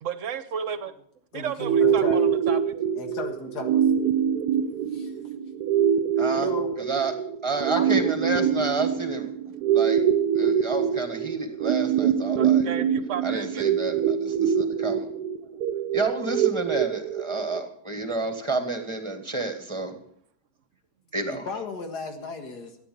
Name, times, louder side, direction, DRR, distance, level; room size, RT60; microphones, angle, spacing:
voice 1, 0.0-0.9 1.3-2.7 12.4-13.7, right 7 dB, 55° right, 12 dB, 1.2 m, -33 dB
voice 2, 1.3-2.3 3.0-3.8 4.9-5.1 6.3-6.7 7.8-8.0 21.3-22.8, left 4 dB, 85° left, 4 dB, 2.2 m, -35 dB
sound 1, 1.6-17.6, right 8 dB, 80° right, 1.2 m, -24 dB
voice 3, 6.2-6.5 6.8-7.1 7.4-9.3 9.7-10.0 10.3-12.7 13.2-15.1 15.9-19.9 21.1-21.5, right 3 dB, 20° right, 6 dB, 1.7 m, -30 dB
14.5 x 9.4 x 6.9 m, 0.67 s
omnidirectional pair, 1.7 m